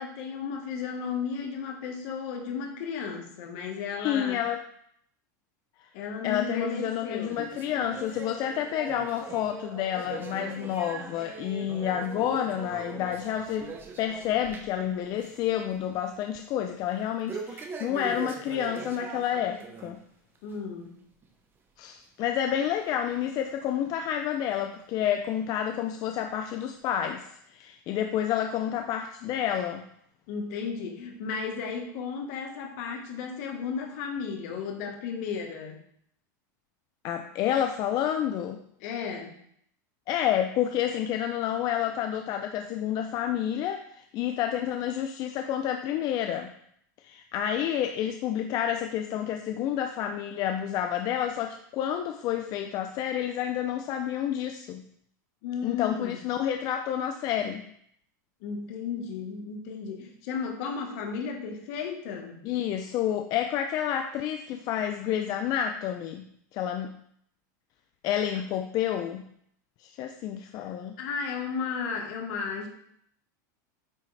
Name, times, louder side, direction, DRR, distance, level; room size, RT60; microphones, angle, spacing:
voice 1, 0.0-4.4 5.9-7.4 20.4-20.9 30.3-35.8 38.8-39.3 55.4-56.2 58.4-62.4 70.6-70.7 71.0-72.7, left 6 dB, 60° left, 3 dB, 1.2 m, -34 dB
voice 2, 3.9-4.6 6.2-13.7 14.0-20.0 21.8-29.8 37.0-38.6 40.1-46.5 47.0-54.8 55.6-57.6 62.4-66.3 66.5-66.9 68.0-69.3 69.8-71.0, left 10 dB, 40° left, 6 dB, 0.4 m, -29 dB
sound 1, 7.3-14.8 15.1-15.5 15.8-15.9 17.3-20.0 20.4-20.5 21.2-21.3 22.2-22.3 23.1-23.2, right 4 dB, 20° right, 0.7 m, -41 dB
8.4 x 3.5 x 3.2 m, 0.69 s
supercardioid pair, 140°, 10 cm